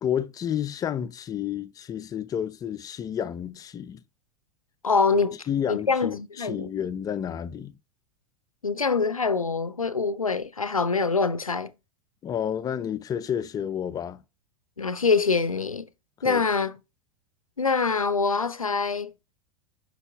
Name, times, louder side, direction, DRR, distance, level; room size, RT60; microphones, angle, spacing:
voice 1, 0.0-4.0 5.5-7.7 12.2-14.2 16.2-16.4, left 9 dB, 20° left, 0.5 m, -30 dB
voice 2, 4.8-5.4 5.7-6.7 8.6-11.7 14.8-15.9 16.2-16.8 17.6-19.1, left 4 dB, 85° left, 0.5 m, -24 dB
8.0 x 5.5 x 2.3 m
figure-of-eight pair, 85°, 17 cm